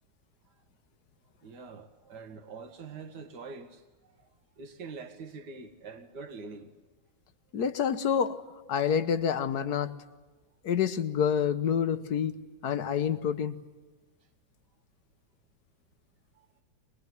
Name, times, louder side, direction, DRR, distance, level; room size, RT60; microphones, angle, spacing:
voice 1, 1.4-4.3 4.6-6.7 16.3-16.5, right 4 dB, 55° right, 2.4 m, -45 dB
voice 2, 7.5-8.4 8.7-10.0 10.6-13.6, left 7 dB, 55° left, 1.5 m, -28 dB
24.5 x 21.5 x 9.6 m
omnidirectional pair, 2.2 m